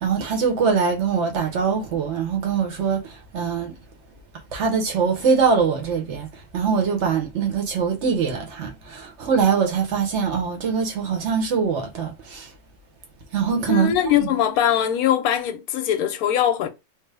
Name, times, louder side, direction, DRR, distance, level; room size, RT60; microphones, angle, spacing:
voice 1, 0.0-3.8 4.5-12.5 13.3-14.3, right 6 dB, 55° right, 1.0 m, -23 dB
voice 2, 13.7-16.7, left 10 dB, 75° left, 1.0 m, -21 dB
3.2 x 2.0 x 3.3 m
omnidirectional pair, 1.6 m